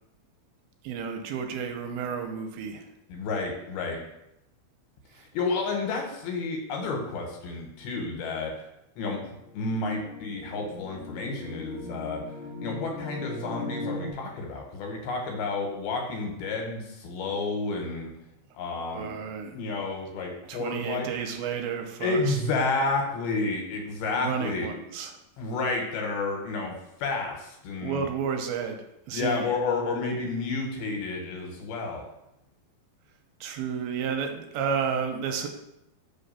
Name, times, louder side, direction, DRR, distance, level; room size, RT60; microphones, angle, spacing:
voice 1, 0.8-2.9 18.9-19.6 20.5-22.4 24.2-25.1 27.8-28.8 29.1-29.5 33.4-35.5, right 6 dB, 85° right, 5 dB, 2.4 m, -31 dB
voice 2, 3.1-4.0 5.3-8.7 9.0-9.2 9.5-12.2 12.6-18.1 18.5-19.1 19.5-21.1 22.0-24.7 25.4-26.8 27.0-28.0 29.1-32.0, left 3 dB, 80° left, 2 dB, 2.8 m, -30 dB
sound 1, 9.4-14.1, left 2 dB, 50° left, 1.7 m, -38 dB
5.4 x 3.3 x 5.5 m, 0.84 s
omnidirectional pair, 4.4 m